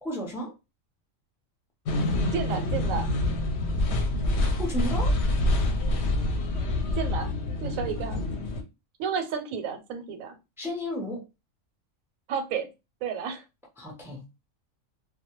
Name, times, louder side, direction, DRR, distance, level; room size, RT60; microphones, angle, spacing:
voice 1, 0.0-0.5 4.6-5.2 10.6-11.2 13.8-14.3, left 1 dB, 5° right, 0.3 m, -33 dB
sound 1, 1.9-8.6, left 1 dB, 65° left, 0.8 m, -26 dB
voice 2, 2.3-3.1 6.9-7.3 7.6-8.3 9.0-10.4 12.3-12.7 13.0-13.4, right 7 dB, 85° right, 1.0 m, -31 dB
2.2 x 2.1 x 2.9 m
omnidirectional pair, 1.4 m